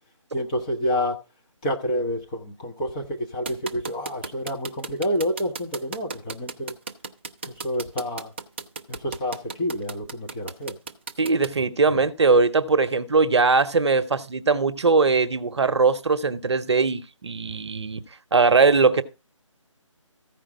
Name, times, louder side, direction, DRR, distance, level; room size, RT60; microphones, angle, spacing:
voice 1, 0.3-1.2 1.6-6.7 7.6-8.3 8.9-10.8, equal, 15° left, 0.8 m, -28 dB
sound 1, 3.5-11.5, right 4 dB, 20° right, 0.5 m, -34 dB
voice 2, 11.2-18.0 18.3-19.0, right 4 dB, 55° right, 0.9 m, -20 dB
14.5 x 5.0 x 4.7 m
figure-of-eight pair, 160°, 17 cm